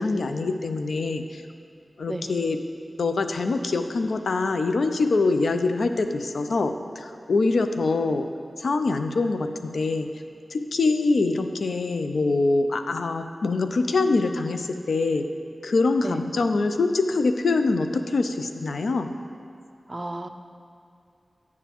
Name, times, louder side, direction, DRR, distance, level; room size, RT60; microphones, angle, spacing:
voice 1, 0.0-1.4 2.0-2.6 3.0-8.3 8.6-10.1 10.5-15.3 15.6-19.1, left 3 dB, 85° left, 7 dB, 0.4 m, -24 dB
voice 2, 19.9-20.3, right 1 dB, 30° right, 7 dB, 0.5 m, -33 dB
9.3 x 7.0 x 2.9 m, 2.5 s
cardioid pair, 45°, 0 cm